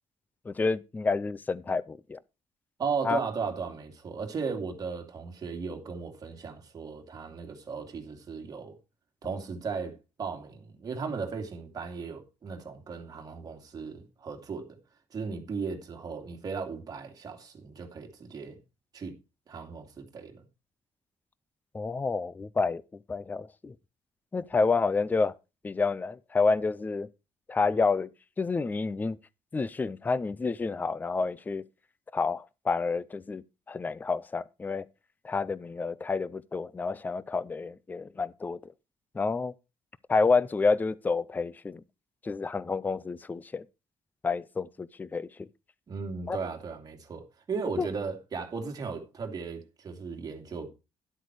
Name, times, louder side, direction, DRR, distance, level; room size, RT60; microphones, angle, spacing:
voice 1, 0.5-2.2 3.0-3.2 21.7-22.8 23.1-23.7 24.3-25.3 25.6-27.1 27.5-28.1 28.4-29.2 29.5-31.6 32.1-34.8 35.2-38.7 39.1-39.5 40.1-41.8 42.2-43.6 44.2-45.5 46.3-46.4 47.8-47.9, left 4 dB, 15° left, 0.5 m, -29 dB
voice 2, 2.8-8.8 9.2-14.8 15.1-18.6 18.9-19.2 19.5-20.4 45.9-50.7, right 5 dB, 35° right, 2.6 m, -36 dB
12.0 x 8.1 x 4.7 m
cardioid pair, 155°, 11 cm